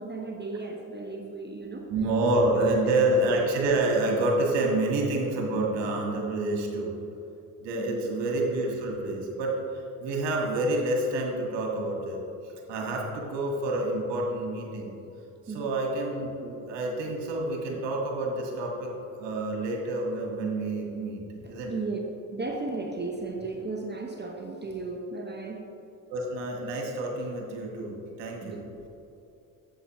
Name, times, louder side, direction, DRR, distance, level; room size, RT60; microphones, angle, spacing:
voice 1, 0.0-1.9 2.3-2.6 7.7-8.1 14.7-15.1 15.5-15.8 21.4-22.0 22.3-25.7 28.4-28.6, right 3 dB, 25° right, 1 dB, 0.9 m, -36 dB
voice 2, 1.9-6.9 7.6-12.2 12.4-14.9 15.5-21.2 21.5-21.7 26.1-28.6, right 2 dB, 70° right, 0 dB, 1.8 m, -28 dB
10.0 x 7.8 x 3.1 m, 2.9 s
hypercardioid pair, 55°, 45 cm